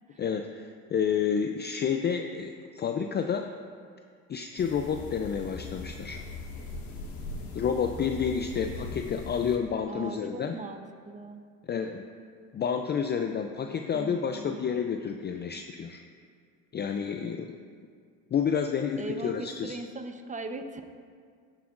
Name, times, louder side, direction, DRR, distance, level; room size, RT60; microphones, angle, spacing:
voice 1, 0.2-3.5 4.3-6.2 7.5-10.6 11.6-12.0 12.5-16.0 16.7-17.6 18.3-19.8, left 7 dB, 25° left, 5 dB, 0.5 m, -30 dB
sound 1, 4.6-9.6, left 3 dB, 60° left, 1.9 m, -40 dB
voice 2, 9.9-11.4 13.9-14.6 19.0-20.8, right 2 dB, 20° right, 7 dB, 0.8 m, -39 dB
15.0 x 7.6 x 2.6 m, 2.1 s
hypercardioid pair, 75°, 40 cm